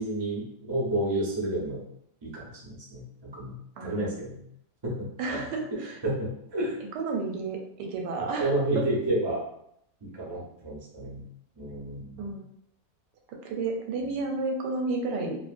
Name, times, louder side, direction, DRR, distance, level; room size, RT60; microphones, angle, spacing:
voice 1, 0.0-1.8 2.2-4.4 4.8-5.5 6.0-6.8 8.4-9.4 10.0-11.2 11.6-12.3, right 1 dB, 45° right, -6 dB, 0.3 m, -31 dB
voice 2, 3.8-4.2 5.2-6.0 6.9-8.9 12.2-12.4 13.4-15.4, right 3 dB, 80° right, 2 dB, 1.2 m, -31 dB
2.9 x 2.1 x 2.4 m, 0.74 s
omnidirectional pair, 1.8 m